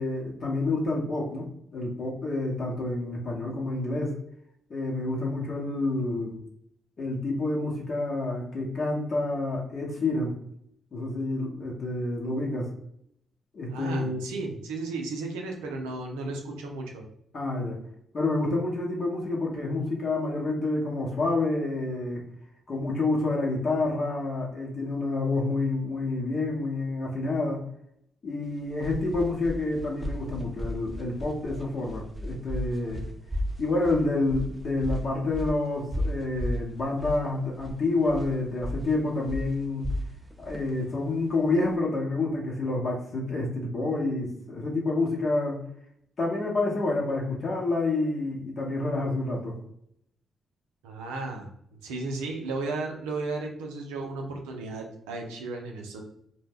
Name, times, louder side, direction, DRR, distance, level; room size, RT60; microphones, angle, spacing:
voice 1, 0.0-4.1 4.7-6.4 7.0-10.4 10.9-12.7 13.5-14.3 17.3-17.8 18.1-22.3 22.7-27.6 28.2-33.0 33.6-39.9 40.4-45.6 46.2-49.6, left 2 dB, 55° left, -3 dB, 0.8 m, -28 dB
voice 2, 13.7-17.1 50.8-51.5 51.8-56.0, right 3 dB, 85° right, 1 dB, 0.4 m, -34 dB
sound 1, 28.5-41.7, left 1 dB, 15° right, 0.6 m, -35 dB
2.1 x 2.1 x 3.3 m, 0.71 s
hypercardioid pair, 45°, 0 cm